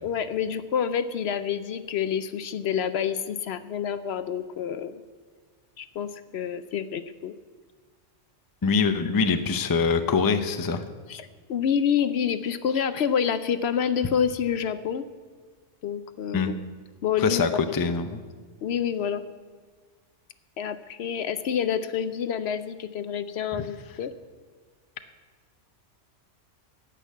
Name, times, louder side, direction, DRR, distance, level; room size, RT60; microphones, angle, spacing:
voice 1, 0.0-5.0 5.8-7.3 11.1-15.0 15.8-16.6 17.0-17.6 18.6-19.2 20.6-24.1, left 8 dB, 65° left, 12 dB, 0.8 m, -28 dB
voice 2, 8.6-10.8 16.3-16.5 17.2-18.2 23.5-23.7, left 5 dB, 25° left, 8 dB, 0.4 m, -24 dB
14.5 x 5.9 x 9.1 m, 1.5 s
omnidirectional pair, 1.2 m